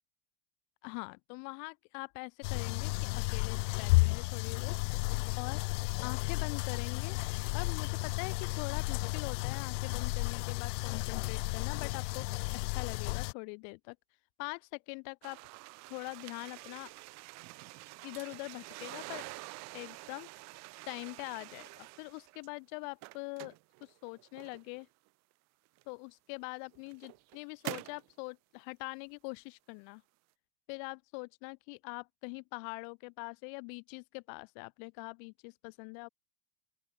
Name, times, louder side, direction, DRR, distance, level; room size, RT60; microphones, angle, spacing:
voice 1, 0.8-4.8 5.4-5.6 6.0-7.2 7.5-12.3 12.5-14.0 14.4-15.4 15.9-16.9 18.0-19.3 19.7-20.3 20.9-23.5 23.8-24.9 25.9-30.0 30.7-36.1, left 40 dB or more, 55° left, 3.5 m, -43 dB
sound 1, 2.4-13.3, left 25 dB, 75° left, 0.5 m, -33 dB
sound 2, 15.2-22.5 22.8-24.8 25.8-25.9 26.6-28.1, right 24 dB, 45° right, 3.1 m, -47 dB
open air
supercardioid pair, 170°, 37 cm